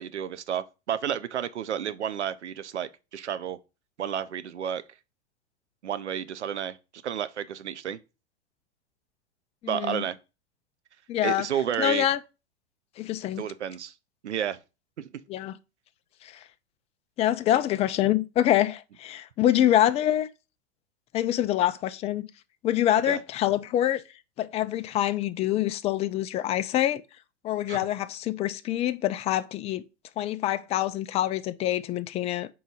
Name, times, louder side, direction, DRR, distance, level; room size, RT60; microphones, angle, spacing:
voice 1, 0.0-3.6 4.0-4.8 5.8-6.8 7.0-8.0 9.7-10.2 11.2-12.1 13.4-13.9 14.2-14.6 15.0-15.1 23.1-23.2 27.7-27.8, right 9 dB, 80° right, 0.7 m, -31 dB
voice 2, 9.6-10.1 11.1-11.5 11.8-12.2 13.0-13.4 15.3-15.6 16.2-16.4 17.2-20.3 21.1-22.3 22.6-24.0 24.4-27.0 27.4-29.8 30.2-32.5, left 12 dB, 20° left, 0.4 m, -25 dB
4.7 x 3.8 x 5.4 m
hypercardioid pair, 100°, 34 cm